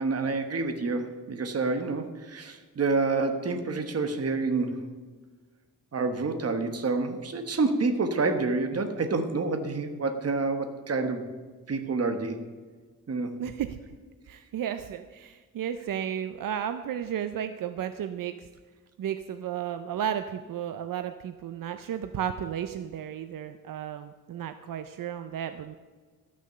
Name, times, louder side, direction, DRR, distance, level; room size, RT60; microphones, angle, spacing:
voice 1, 0.0-4.8 5.9-11.2 11.7-12.4 13.1-13.4, right 3 dB, 45° right, 7 dB, 1.1 m, -28 dB
voice 2, 13.4-13.8 14.3-18.5 19.0-25.7, right 9 dB, 80° right, 9 dB, 0.5 m, -33 dB
13.0 x 6.3 x 6.7 m, 1.4 s
wide cardioid pair, 125°, 33 cm